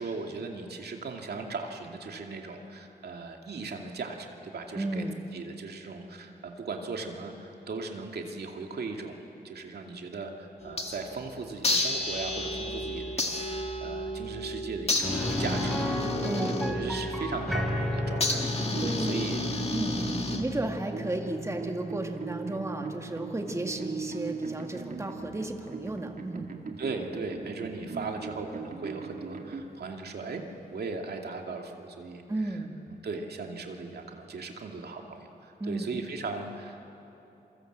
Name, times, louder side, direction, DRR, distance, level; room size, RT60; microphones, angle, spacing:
voice 1, 0.0-5.1 5.3-9.2 9.4-20.4 20.9-21.0 26.8-30.4 30.7-32.6 32.9-36.9, right 4 dB, 80° right, 2 dB, 2.4 m, -38 dB
voice 2, 4.7-5.2 16.2-16.8 18.8-19.2 19.7-20.0 20.4-26.5 32.3-32.8 35.6-35.9, right 2 dB, 15° right, 3 dB, 1.9 m, -33 dB
sound 1, 10.6-11.2 11.6-20.8, left 1 dB, 40° left, 2.2 m, -32 dB
sound 2, 15.0-24.8 25.1-25.2 27.6-27.7, left 1 dB, ahead, 3.4 m, -35 dB
sound 3, 18.7-29.6, right 4 dB, 55° right, 2.2 m, -39 dB
27.5 x 24.5 x 8.0 m, 3.0 s
wide cardioid pair, 95°, 17 cm